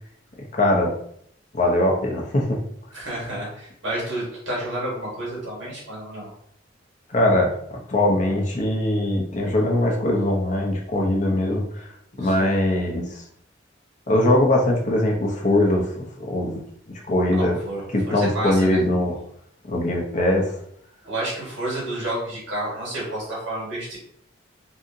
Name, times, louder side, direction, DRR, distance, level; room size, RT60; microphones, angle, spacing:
voice 1, 0.5-0.9 1.5-2.6 7.1-11.9 12.2-13.2 14.1-16.6 17.1-17.6 17.9-19.2 19.7-20.5, left 1 dB, 40° left, 0 dB, 0.6 m, -21 dB
voice 2, 2.9-6.3 12.2-12.5 17.3-18.8 21.0-24.0, right 1 dB, 80° right, -5 dB, 1.2 m, -30 dB
2.7 x 2.6 x 2.5 m, 0.68 s
head